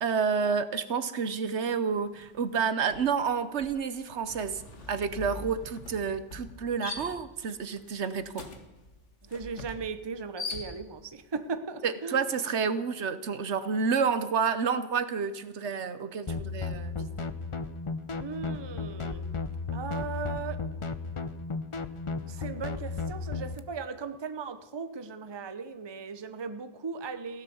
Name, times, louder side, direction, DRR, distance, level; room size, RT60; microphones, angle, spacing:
voice 1, 0.0-4.6 4.9-8.4 11.8-17.1, right 6 dB, 70° right, 12 dB, 1.2 m, -29 dB
sound 1, 2.2-2.4 2.7-11.2, left 3 dB, 75° left, 2.0 m, -43 dB
voice 2, 9.2-12.2 18.1-19.3 19.7-20.6 22.2-27.4, right 5 dB, 25° right, 10 dB, 0.8 m, -37 dB
sound 2, 16.3-23.6, left 4 dB, 30° left, 0.7 m, -35 dB
16.0 x 11.5 x 7.1 m, 1.0 s
omnidirectional pair, 1.2 m